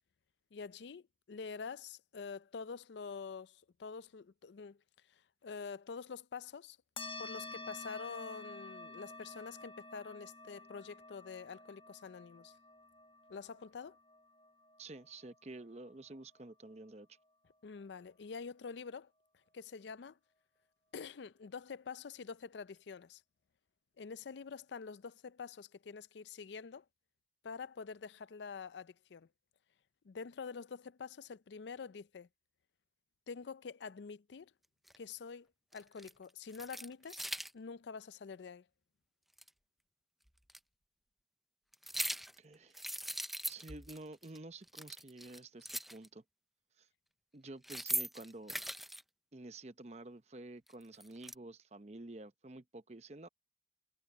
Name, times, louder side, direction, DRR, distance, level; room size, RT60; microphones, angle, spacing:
voice 1, 0.5-4.8 5.1-6.8 7.2-12.5 13.3-14.0 17.6-19.1 19.5-20.2 20.9-23.2 24.0-26.8 27.4-29.3 30.0-32.3 33.3-34.5 35.0-35.5 35.7-38.7, left 5 dB, 75° left, 0.4 m, -46 dB
sound 1, 7.0-15.9, left 2 dB, 30° left, 1.1 m, -50 dB
voice 2, 14.8-17.1 42.4-42.8 43.5-46.2 46.8-46.9 47.3-48.5 49.3-53.3, right 2 dB, 35° right, 0.8 m, -50 dB
sound 2, 34.9-35.0 35.7-36.1 36.5-37.5 39.4-39.5 40.5-40.6 41.7-42.4 42.7-44.0 44.2-44.4 44.6-46.1 47.5-49.0 50.7-51.3, right 1 dB, ahead, 0.4 m, -40 dB
head